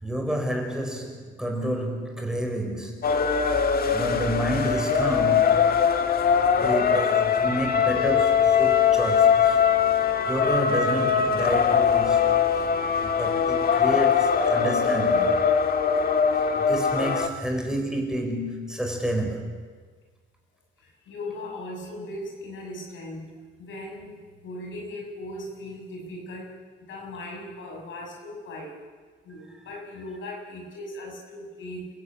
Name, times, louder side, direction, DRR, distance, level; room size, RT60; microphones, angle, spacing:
voice 1, 0.0-3.0 3.9-5.6 6.2-9.6 10.3-12.6 13.0-15.4 16.5-19.6, equal, 5° right, 5.3 m, -30 dB
sound 1, 3.0-17.3, left 7 dB, 50° left, 1.8 m, -22 dB
voice 2, 20.8-26.5 26.8-28.7 29.2-31.9, left 1 dB, 75° left, 7.2 m, -38 dB
28.5 x 15.5 x 8.9 m
cardioid pair, 90°, 20 cm